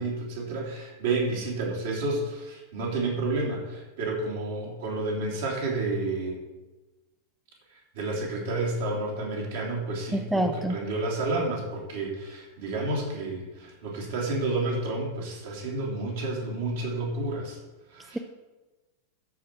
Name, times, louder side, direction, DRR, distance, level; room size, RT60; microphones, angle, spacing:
voice 1, 0.0-6.4 7.7-17.6 17.9-18.2, right 2 dB, 55° right, -2 dB, 2.9 m, -30 dB
voice 2, 10.1-10.8, right 1 dB, 5° right, 6 dB, 0.6 m, -26 dB
12.5 x 5.0 x 5.9 m, 1.1 s
figure-of-eight pair, 90°, 0 cm